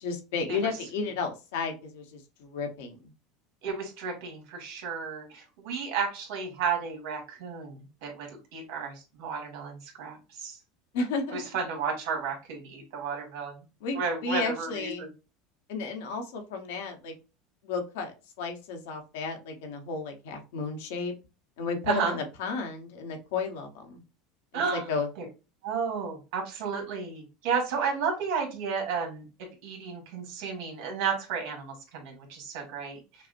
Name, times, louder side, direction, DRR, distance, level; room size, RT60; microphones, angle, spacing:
voice 1, 0.0-3.1 10.9-11.4 13.8-15.1 15.7-17.1 17.6-21.1 21.6-24.0 24.7-25.1, left 4 dB, 80° left, 4 dB, 1.1 m, -33 dB
voice 2, 3.6-10.6 11.3-13.5 13.9-15.1 21.9-22.2 24.5-24.8 25.2-25.3 25.6-29.3 29.6-33.0, right 6 dB, 65° right, 2 dB, 1.9 m, -32 dB
5.7 x 2.1 x 2.6 m, 0.29 s
supercardioid pair, 150°, 0 cm